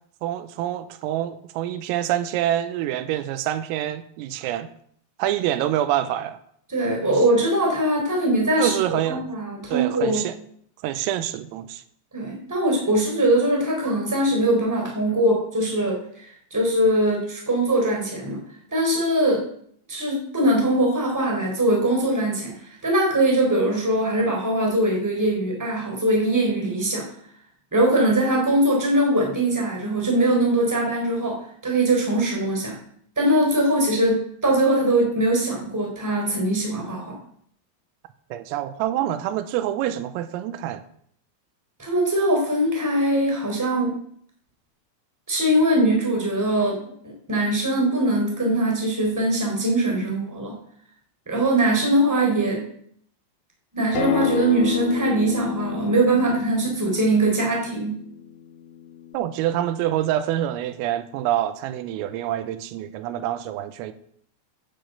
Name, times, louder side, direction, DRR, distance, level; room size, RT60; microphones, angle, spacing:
voice 1, 0.2-4.7 5.2-6.4 8.6-9.3 9.7-10.4 10.8-11.8 38.3-40.9 59.1-63.9, right 12 dB, 90° right, 3.5 m, -26 dB
voice 2, 6.7-10.2 12.1-18.4 18.7-19.4 19.9-27.0 27.7-31.4 31.6-32.7 33.1-37.2 41.8-43.9 45.3-46.8 47.0-50.6 51.2-52.7 53.7-58.0, right 1 dB, 5° right, 3.1 m, -22 dB
Acoustic guitar, 53.9-59.1, left 12 dB, 80° left, 3.8 m, -30 dB
10.0 x 9.3 x 7.9 m
omnidirectional pair, 6.0 m